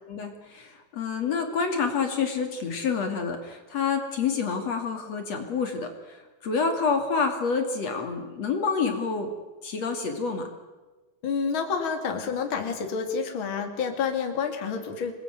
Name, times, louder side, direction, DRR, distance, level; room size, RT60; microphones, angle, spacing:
voice 1, 0.0-9.3 9.6-10.5, left 5 dB, 60° left, 5 dB, 3.6 m, -28 dB
voice 2, 11.2-15.1, left 6 dB, 40° left, 5 dB, 3.2 m, -29 dB
27.5 x 21.0 x 9.3 m, 1.2 s
omnidirectional pair, 3.5 m